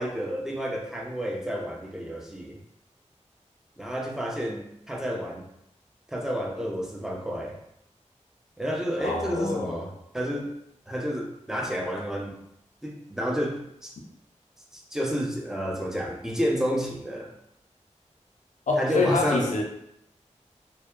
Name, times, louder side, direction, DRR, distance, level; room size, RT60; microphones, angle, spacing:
voice 1, 0.0-2.6 3.8-5.5 6.1-7.6 8.6-10.5 10.9-12.4 12.8-13.9 14.7-17.3 18.8-19.5, equal, 5° right, -1 dB, 0.5 m, -30 dB
voice 2, 9.0-9.8 18.7-19.6, left 3 dB, 80° left, 0 dB, 0.5 m, -25 dB
2.6 x 2.1 x 2.3 m, 0.76 s
cardioid pair, 45°, 13 cm